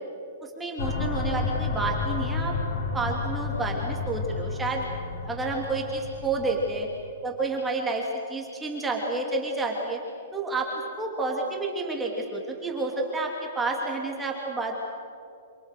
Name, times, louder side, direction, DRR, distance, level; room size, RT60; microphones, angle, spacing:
voice 1, 0.4-2.5 2.9-4.9 5.2-6.9 7.2-10.0 10.3-10.7 11.0-14.8, right 3 dB, 5° right, -1 dB, 2.8 m, -30 dB
sound 1, 0.8-7.1, left 4 dB, 50° left, 3.5 m, -31 dB
28.0 x 27.5 x 6.7 m, 2.5 s
hypercardioid pair, 165°, 0 cm